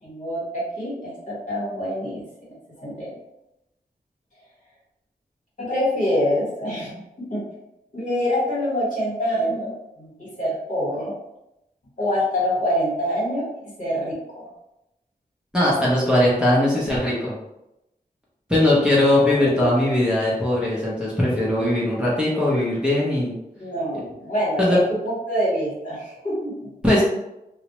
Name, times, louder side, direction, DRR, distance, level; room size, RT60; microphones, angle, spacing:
voice 1, 0.0-2.2 2.8-3.1 5.6-7.4 7.9-9.7 10.0-11.2 12.0-13.5 13.8-14.5 19.4-19.7 23.6-26.7, equal, 50° left, -7 dB, 1.2 m, -25 dB
voice 2, 15.5-17.3 18.5-23.3 24.6-24.8 26.8-27.0, left 1 dB, 5° right, -7 dB, 0.7 m, -20 dB
2.2 x 2.0 x 2.9 m, 0.88 s
wide cardioid pair, 80°, 17 cm